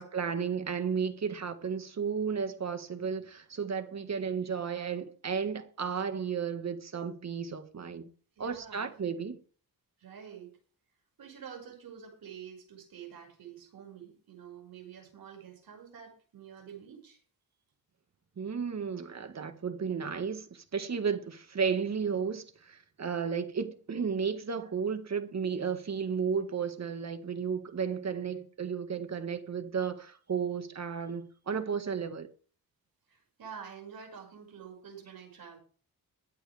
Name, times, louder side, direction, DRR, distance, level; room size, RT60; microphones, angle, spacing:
voice 1, 0.0-8.1 8.4-9.4 18.4-32.3, right 6 dB, 45° right, 1.7 m, -33 dB
voice 2, 8.4-9.0 10.0-10.6 11.2-17.2 24.6-24.7 33.1-35.6, right 7 dB, 75° right, 5.8 m, -48 dB
23.0 x 7.8 x 3.4 m
cardioid pair, 105°, 36 cm